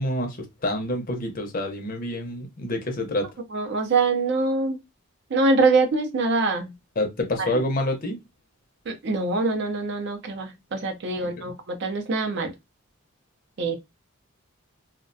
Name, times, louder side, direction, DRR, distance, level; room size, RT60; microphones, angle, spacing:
voice 1, 0.0-3.3 7.0-8.2 11.2-11.5, left 1 dB, 40° left, 0.6 m, -28 dB
voice 2, 3.5-4.8 5.3-6.7 7.4-7.6 8.9-12.5 13.6-13.7, right 3 dB, 55° right, 0.5 m, -24 dB
2.3 x 2.1 x 2.6 m
head